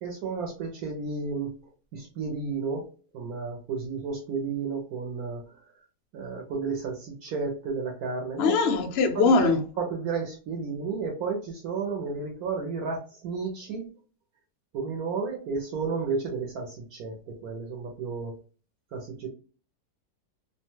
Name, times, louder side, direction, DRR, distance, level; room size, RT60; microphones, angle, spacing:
voice 1, 0.0-1.6 1.9-2.9 3.1-5.6 6.1-8.7 9.1-13.9 14.7-18.3 18.9-19.3, right 4 dB, 70° right, 1.1 m, -32 dB
voice 2, 8.4-9.6, left 4 dB, 85° left, 0.5 m, -21 dB
2.7 x 2.2 x 2.9 m
omnidirectional pair, 1.7 m